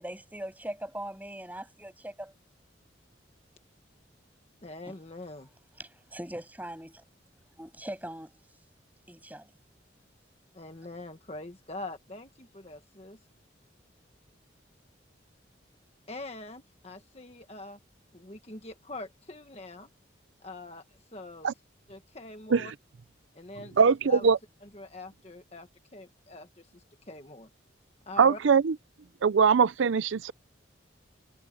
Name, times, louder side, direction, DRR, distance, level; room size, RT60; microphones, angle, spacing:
voice 1, 0.0-2.3 4.9-5.0 5.8-7.0 7.6-8.4 9.1-9.5, right 1 dB, 10° right, 7.6 m, -40 dB
voice 2, 4.6-5.5 10.5-13.2 16.1-17.8 18.1-19.9 20.4-20.8 21.1-21.5 21.9-22.7 23.3-23.8 24.1-24.3 24.7-25.7 25.9-26.6 27.1-27.5 28.1-28.4, left 2 dB, 30° left, 1.4 m, -43 dB
voice 3, 23.8-24.4 28.2-28.8 29.2-30.3, right 6 dB, 80° right, 0.5 m, -22 dB
head